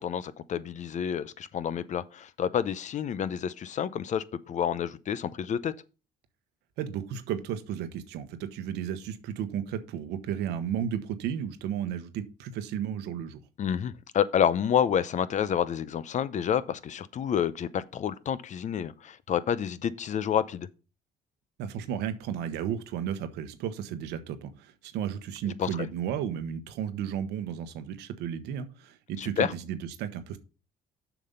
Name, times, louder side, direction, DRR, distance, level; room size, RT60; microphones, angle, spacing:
voice 1, 0.0-5.7 13.6-20.7 25.6-25.7 29.2-29.5, left 8 dB, 45° left, 0.6 m, -29 dB
voice 2, 6.8-13.4 21.6-30.4, right 9 dB, 90° right, 1.1 m, -33 dB
7.1 x 6.0 x 5.4 m
cardioid pair, 110°, 17 cm